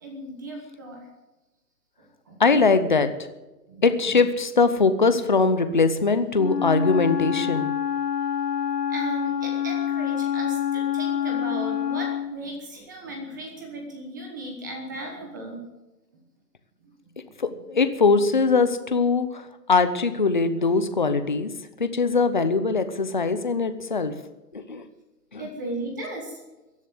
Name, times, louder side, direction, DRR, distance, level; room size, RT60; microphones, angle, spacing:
voice 1, 0.0-1.1 2.3-2.4 3.7-4.2 8.9-15.6 16.8-16.9 17.2-17.5 25.4-26.4, right 2 dB, 10° right, 2 dB, 1.2 m, -36 dB
voice 2, 2.4-3.1 3.8-7.7 17.4-21.5 21.8-24.1 24.5-24.8 25.3-25.4, left 4 dB, 30° left, 10 dB, 0.7 m, -21 dB
Wind instrument woodwind instrument, 6.3-12.4, left 9 dB, 70° left, 1.6 m, -26 dB
16.0 x 11.0 x 7.8 m, 1.1 s
hypercardioid pair, 175°, 50 cm